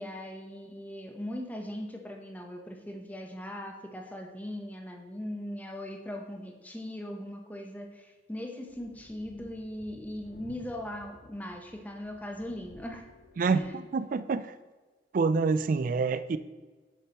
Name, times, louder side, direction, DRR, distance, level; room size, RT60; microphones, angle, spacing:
voice 1, 0.0-13.1 13.5-13.8, left 1 dB, 10° left, 2 dB, 0.8 m, -39 dB
sound 1, 8.7-13.7, left 2 dB, 85° left, 0.8 m, -55 dB
voice 2, 13.4-14.5 15.1-16.4, right 4 dB, 50° right, 13 dB, 0.3 m, -27 dB
7.7 x 6.6 x 3.0 m, 1.3 s
head